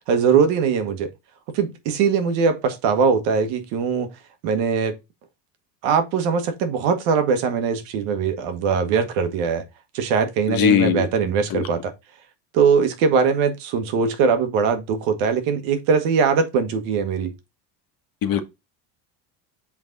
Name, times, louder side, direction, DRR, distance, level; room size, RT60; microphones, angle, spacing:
voice 1, 0.1-1.1 1.5-4.1 4.4-5.0 5.8-9.6 9.9-11.9 12.5-17.3, right 6 dB, 75° right, 1.4 m, -21 dB
voice 2, 10.5-11.1 11.5-11.6 18.2-18.4, left 8 dB, 45° left, 1.2 m, -19 dB
5.9 x 4.0 x 3.9 m
supercardioid pair, 105°, 48 cm